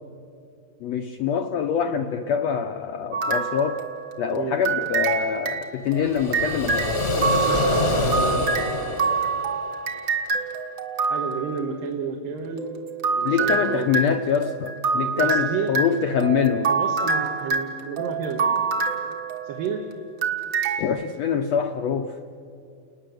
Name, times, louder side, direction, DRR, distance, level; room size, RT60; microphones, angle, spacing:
voice 1, 0.8-3.8 4.2-6.9 13.2-16.7 20.8-22.2, left 7 dB, 75° left, 5 dB, 1.5 m, -24 dB
sound 1, 3.1-4.2 4.6-11.6 12.6-19.8 20.2-20.8, right 5 dB, 45° right, 1.9 m, -26 dB
sound 2, 6.0-10.0, left 1 dB, 35° left, 1.0 m, -25 dB
voice 2, 8.1-8.5 11.1-12.8 13.1-13.9 15.1-15.7 16.7-18.7 19.4-19.8, right 6 dB, 80° right, 2 dB, 3.1 m, -31 dB
29.5 x 20.0 x 7.8 m, 2.4 s
omnidirectional pair, 4.0 m